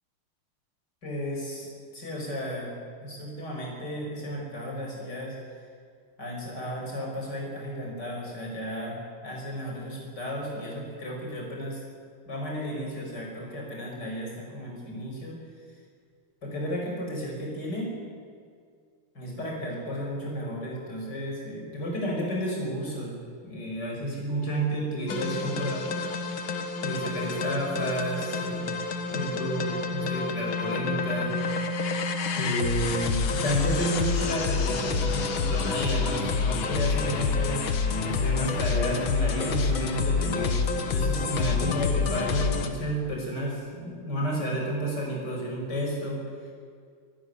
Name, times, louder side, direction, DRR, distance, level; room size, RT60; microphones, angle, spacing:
voice 1, 1.0-2.7 3.0-5.3 6.2-9.0 9.2-11.8 12.3-15.4 16.4-17.9 19.1-23.2 23.4-25.9 26.8-28.7 29.1-31.3 32.4-46.2, equal, 50° left, -2 dB, 6.3 m, -32 dB
sound 1, 25.1-42.7, left 5 dB, 70° left, 2.1 m, -28 dB
21.5 x 13.0 x 9.9 m, 2.1 s
omnidirectional pair, 2.4 m